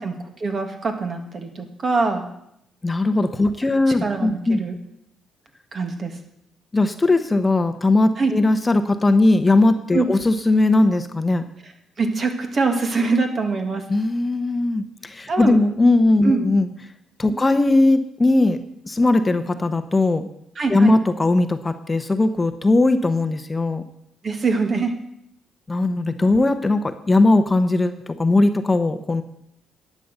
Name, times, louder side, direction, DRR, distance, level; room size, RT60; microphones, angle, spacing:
voice 1, 0.0-2.3 4.0-4.8 5.7-6.2 8.2-8.3 9.9-10.1 12.0-13.9 15.3-15.6 16.2-16.4 17.3-17.4 20.6-20.9 24.2-24.9, right 4 dB, 45° right, 5 dB, 1.9 m, -23 dB
voice 2, 2.8-4.6 6.7-11.4 13.9-16.7 17.2-20.3 20.7-23.8 25.7-29.2, left 2 dB, 20° left, 9 dB, 0.9 m, -19 dB
11.5 x 8.5 x 6.7 m, 0.77 s
cardioid pair, 90°, 0 cm